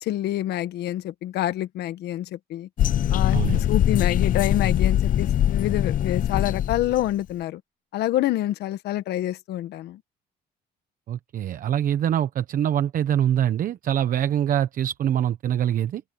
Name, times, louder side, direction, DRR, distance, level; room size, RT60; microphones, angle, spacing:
voice 1, 0.0-2.7 3.1-3.4 3.7-7.6 7.9-10.0, left 14 dB, 75° left, 1.4 m, -27 dB
sound 1, 2.8-7.1, left 11 dB, 50° left, 0.9 m, -22 dB
voice 2, 3.3-3.6 11.1-16.0, right 10 dB, 55° right, 1.0 m, -24 dB
open air
cardioid pair, 110°, 17 cm